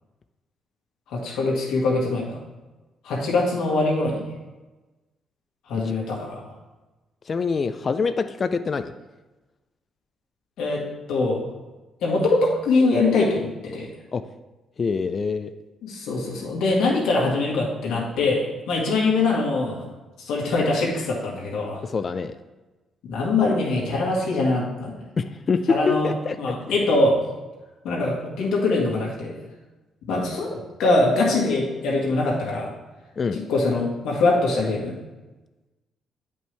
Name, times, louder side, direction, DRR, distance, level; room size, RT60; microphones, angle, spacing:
voice 1, 1.1-2.4 3.0-4.2 5.7-6.4 10.6-10.8 11.1-11.4 12.0-13.9 15.8-19.9 20.2-21.8 23.0-25.0 25.7-26.1 26.4-27.2 27.8-29.4 30.1-32.7 33.3-35.0, left 2 dB, 85° left, -3 dB, 2.0 m, -23 dB
voice 2, 7.3-8.9 14.1-14.2 14.8-15.5 21.8-22.4 25.2-26.7 33.2-33.4, left 5 dB, 40° left, 10 dB, 0.4 m, -25 dB
9.1 x 5.3 x 3.3 m, 1.2 s
cardioid pair, 90°, 0 cm